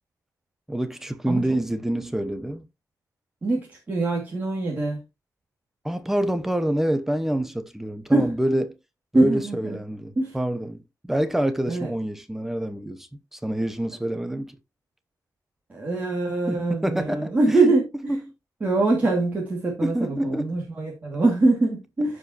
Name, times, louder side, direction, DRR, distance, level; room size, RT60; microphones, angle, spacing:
voice 1, 0.7-2.6 5.8-8.8 9.1-14.6 16.5-17.3 18.1-18.2 19.8-20.5, right 1 dB, 5° right, 0.9 m, -27 dB
voice 2, 3.4-5.0 8.1-8.3 9.1-9.8 10.2-10.4 11.7-11.9 15.7-18.2 18.6-22.2, right 2 dB, 25° right, 2.6 m, -23 dB
15.0 x 5.1 x 3.0 m
wide cardioid pair, 175°, 6 cm